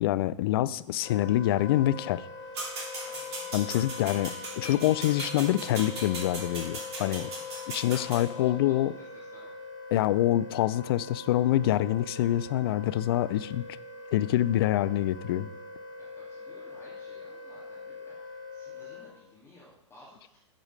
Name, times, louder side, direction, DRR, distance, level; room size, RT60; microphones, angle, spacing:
voice 1, 0.0-2.2 3.5-4.3 4.6-7.3 7.7-8.9 9.9-13.6 14.1-15.5, left 13 dB, 50° left, 17 dB, 0.4 m, -26 dB
Wind instrument woodwind instrument, 1.0-19.2, left 4 dB, 70° left, 2.5 m, -42 dB
sound 1, 2.5-8.2, right 2 dB, 55° right, 3.3 m, -38 dB
voice 2, 3.0-3.6 4.1-4.2 7.2-7.5 7.9-9.5 16.0-20.4, left 1 dB, 15° left, -7 dB, 2.2 m, -55 dB
9.0 x 4.9 x 5.5 m, 0.85 s
figure-of-eight pair, 110°, 16 cm